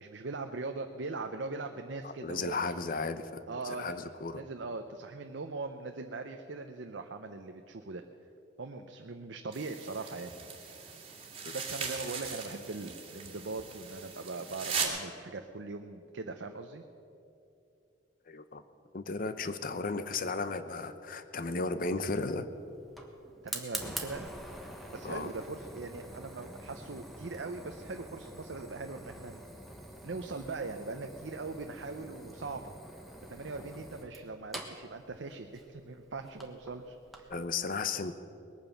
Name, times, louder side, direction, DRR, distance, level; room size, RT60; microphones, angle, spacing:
voice 1, 0.0-2.6 3.5-4.0 4.3-8.0 8.6-10.3 11.5-16.8 23.4-24.3 24.9-29.4 30.0-32.7 33.3-37.3, right 3 dB, 75° right, 5 dB, 0.7 m, -40 dB
voice 2, 2.0-4.4 11.4-11.6 18.3-18.6 18.9-22.5 25.0-25.3 37.3-38.1, left 3 dB, 50° left, 12 dB, 0.8 m, -35 dB
sound 1, 9.5-14.8, right 6 dB, 30° right, 2.2 m, -39 dB
Fire, 21.8-37.4, right 1 dB, ahead, 1.4 m, -46 dB
20.5 x 9.0 x 7.1 m, 2.7 s
head